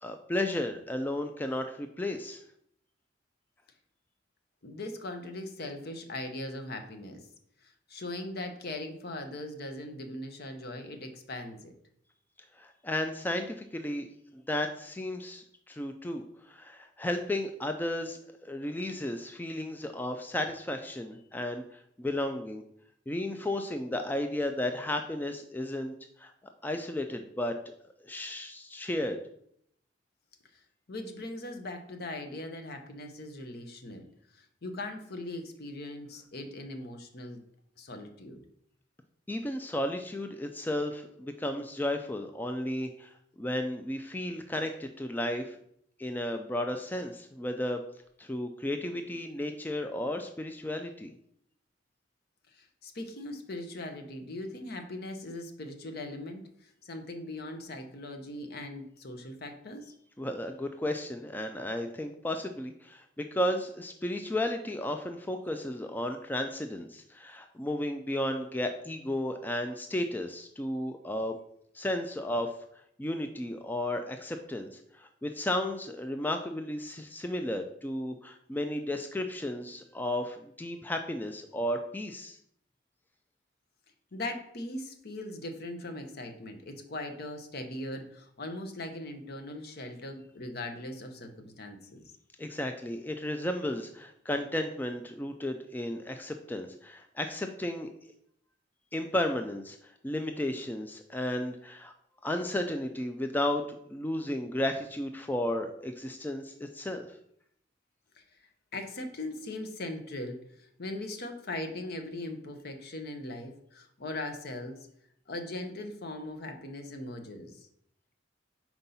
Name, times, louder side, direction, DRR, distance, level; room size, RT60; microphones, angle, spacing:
voice 1, 0.0-2.4 12.5-14.1 14.3-22.6 23.1-26.3 26.6-27.7 28.0-29.2 39.3-45.6 46.0-47.8 48.2-51.1 60.2-71.4 71.7-72.5 73.0-82.4 92.4-97.9 98.9-101.9 102.2-107.1, left 1 dB, 10° left, 5 dB, 0.3 m, -33 dB
voice 2, 4.6-7.2 7.6-11.7 30.9-34.1 34.3-37.4 37.8-38.4 52.5-59.9 84.1-92.0 108.7-114.9 115.3-117.6, left 1 dB, 55° left, 6 dB, 0.8 m, -40 dB
4.5 x 4.0 x 5.5 m, 0.70 s
head